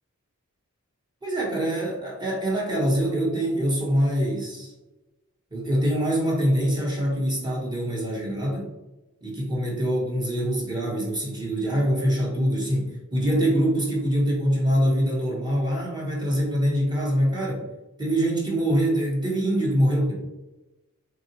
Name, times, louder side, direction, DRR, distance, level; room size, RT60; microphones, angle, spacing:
voice 1, 1.2-4.7 5.5-8.7 9.2-17.7 18.0-20.2, equal, 20° right, -3 dB, 0.9 m, -24 dB
3.7 x 2.3 x 2.8 m, 1.0 s
head